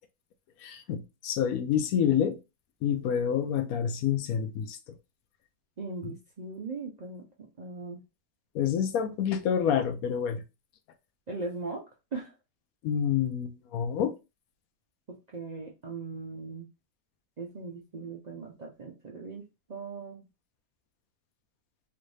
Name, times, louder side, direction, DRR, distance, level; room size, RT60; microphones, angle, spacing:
voice 1, 0.6-2.4 2.8-4.8 6.0-6.1 8.5-10.4 12.8-14.1, left 8 dB, 75° left, 1.0 m, -28 dB
voice 2, 5.8-8.0 11.3-11.8 12.1-12.3 15.1-16.6 17.4-19.4 19.7-20.2, right 3 dB, 75° right, 0.4 m, -39 dB
3.2 x 2.6 x 3.1 m
omnidirectional pair, 1.6 m